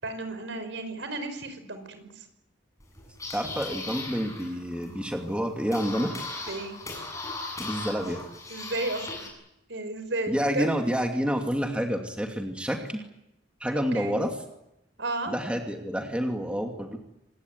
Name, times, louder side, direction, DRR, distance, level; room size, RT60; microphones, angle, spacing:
voice 1, 0.0-2.3 6.4-6.8 8.5-9.3 9.7-10.7 11.6-11.7 13.7-14.2 15.0-15.3, right 2 dB, 75° right, 9 dB, 5.3 m, -33 dB
sound 1, 2.8-9.3, left 3 dB, 15° left, 7.9 m, -38 dB
voice 2, 3.3-6.1 6.9-7.0 7.6-8.2 10.3-13.0 13.6-14.3 15.3-17.0, equal, 5° right, 3 dB, 2.6 m, -28 dB
26.0 x 20.0 x 9.6 m, 0.86 s
head